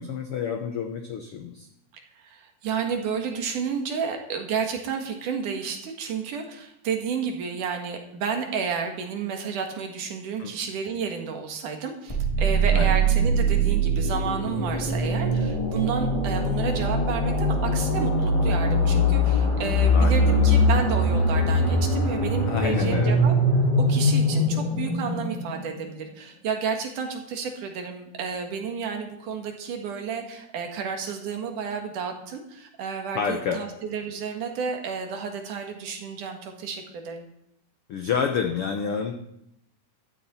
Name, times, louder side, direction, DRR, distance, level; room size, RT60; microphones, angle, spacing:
voice 1, 0.0-1.7 10.4-10.5 12.7-13.0 19.9-20.5 22.5-23.2 33.1-33.6 37.9-39.1, left 6 dB, 80° left, 5 dB, 1.3 m, -28 dB
voice 2, 2.2-23.3 23.9-37.3, right 6 dB, 70° right, 4 dB, 3.0 m, -31 dB
sound 1, 12.1-25.9, equal, 10° left, 2.1 m, -22 dB
15.0 x 12.5 x 4.3 m, 0.80 s
omnidirectional pair, 3.9 m